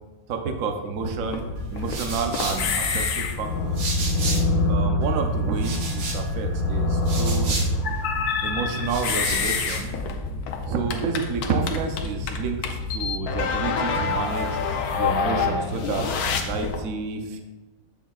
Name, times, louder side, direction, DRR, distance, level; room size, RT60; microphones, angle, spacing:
voice 1, 0.3-1.4 1.7-3.9 4.7-7.6 8.4-9.9 10.7-12.6 12.9-14.6 15.0-17.4, right 5 dB, 85° right, 5 dB, 0.7 m, -29 dB
sound 1, 1.0-16.8, left 3 dB, 70° left, 0.9 m, -26 dB
sound 2, 1.6-4.7 5.0-8.2 8.7-9.9, right 3 dB, 65° right, 1.6 m, -34 dB
7.3 x 7.2 x 2.3 m, 1.1 s
omnidirectional pair, 2.3 m